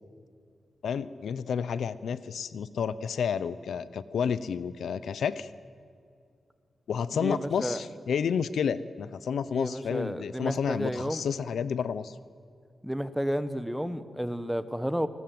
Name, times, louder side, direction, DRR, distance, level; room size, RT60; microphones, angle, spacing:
voice 1, 0.8-5.5 6.9-12.1, left 7 dB, 90° left, 15 dB, 0.9 m, -30 dB
voice 2, 7.1-7.8 9.5-11.2 12.8-15.1, equal, ahead, 11 dB, 1.1 m, -31 dB
28.5 x 20.0 x 7.9 m, 2.3 s
wide cardioid pair, 150°, 0 cm